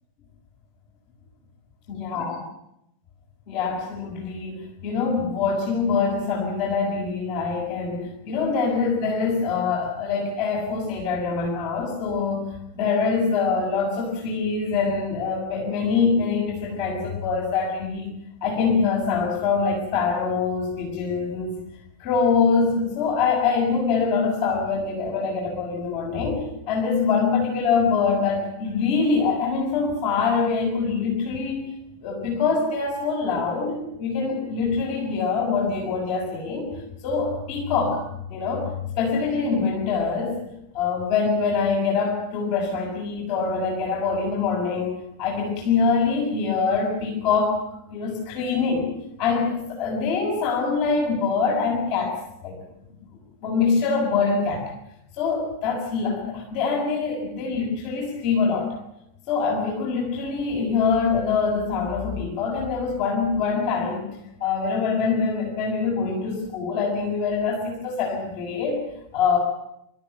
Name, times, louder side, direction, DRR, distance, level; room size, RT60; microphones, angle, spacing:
voice 1, 1.9-2.3 3.5-12.5 12.7-18.1 18.4-21.6 22.0-31.6 32.0-36.7 37.0-38.0 38.3-38.7 39.0-40.4 40.7-47.6 47.9-48.9 49.2-52.2 52.4-52.6 53.4-54.7 55.2-58.7 59.3-64.1 64.4-68.8 69.1-69.4, left 5 dB, 45° left, -1 dB, 6.4 m, -24 dB
27.5 x 14.5 x 9.2 m, 0.82 s
figure-of-eight pair, 90°, 0 cm